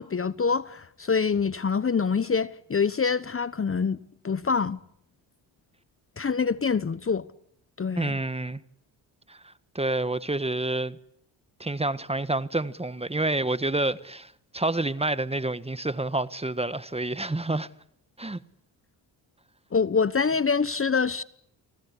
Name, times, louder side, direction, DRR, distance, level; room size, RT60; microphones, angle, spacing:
voice 1, 0.0-4.0 4.2-4.8 6.2-7.3 7.8-8.2 19.7-21.2, left 5 dB, 30° left, 1.1 m, -25 dB
voice 2, 8.0-8.6 9.3-11.0 11.6-17.7 18.2-18.4, right 2 dB, 15° right, 1.5 m, -28 dB
30.0 x 20.0 x 9.9 m
supercardioid pair, 65°, 45 cm